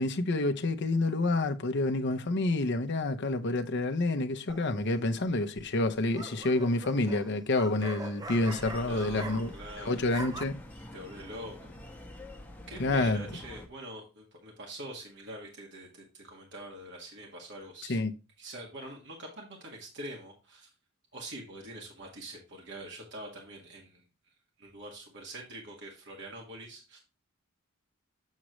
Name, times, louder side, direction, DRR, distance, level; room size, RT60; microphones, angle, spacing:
voice 1, 0.0-9.5 9.8-10.6 12.8-13.2 17.9-18.1, left 2 dB, 55° left, 0.7 m, -28 dB
sound 1, 4.5-4.9 5.8-9.7 10.0-10.4, right 3 dB, 20° right, 0.5 m, -43 dB
sound 2, 8.3-13.7, left 1 dB, 5° left, 1.5 m, -46 dB
voice 2, 8.8-10.0 10.9-11.7 12.7-18.0 18.4-20.7 21.1-24.0 24.6-27.0, right 1 dB, 60° right, 1.8 m, -44 dB
7.4 x 6.3 x 3.1 m
head